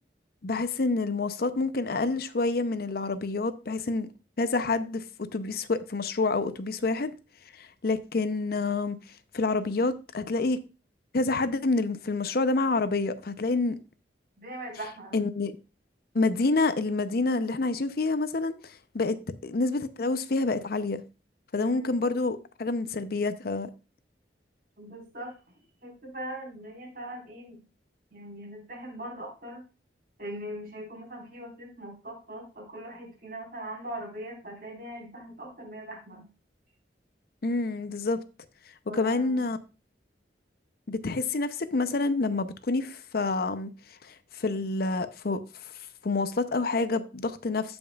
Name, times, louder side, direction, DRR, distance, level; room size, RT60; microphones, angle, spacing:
voice 1, 0.4-4.1 4.4-5.0 5.3-7.1 7.5-9.0 9.3-10.6 11.1-13.8 15.1-15.5 16.1-19.2 19.4-21.0 21.5-23.7 37.4-38.2 38.9-39.6 40.9-43.7 44.0-45.7 46.0-47.8, left 3 dB, 55° left, 0.6 m, -28 dB
voice 2, 14.4-15.2 21.6-21.9 24.8-25.3 25.8-27.6 28.1-29.6 30.2-36.3 38.9-39.4, right 1 dB, 50° right, 4.2 m, -41 dB
16.0 x 5.3 x 2.3 m
head